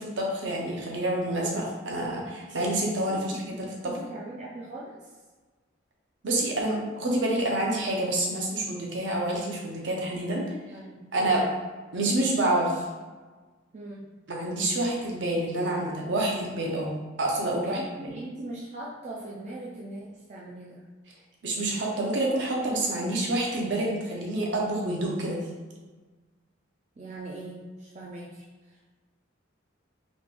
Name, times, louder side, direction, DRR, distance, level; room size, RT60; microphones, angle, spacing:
voice 1, 0.0-3.7 6.2-10.5 11.1-11.5 11.9-12.8 14.3-16.9 17.2-18.1 21.4-25.4, right 1 dB, 65° right, -2 dB, 0.7 m, -28 dB
voice 2, 3.1-5.1 10.7-11.1 13.7-14.0 17.6-20.8 27.0-28.8, right 2 dB, 35° right, -5 dB, 0.4 m, -40 dB
3.5 x 3.1 x 2.4 m, 1.3 s
head